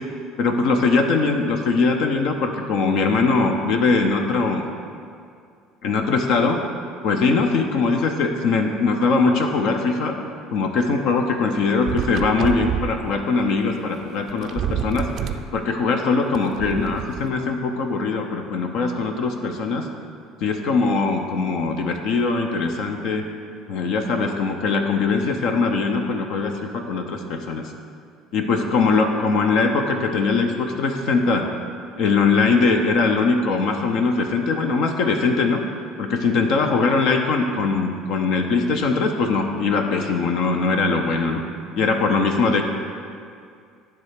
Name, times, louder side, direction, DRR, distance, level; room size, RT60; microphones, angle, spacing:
voice 1, 0.4-4.7 5.8-6.6 7.0-10.2 10.5-19.9 20.4-23.2 23.7-27.7 28.3-31.5 32.0-35.6 36.0-41.4 41.8-42.6, left 4 dB, 60° left, 4 dB, 0.6 m, -21 dB
sound 1, 11.8-13.0 14.0-14.1 14.3-15.5 16.3-17.2, right 8 dB, 50° right, 0.4 m, -27 dB
10.5 x 3.5 x 6.5 m, 2.3 s
figure-of-eight pair, 60°, 0 cm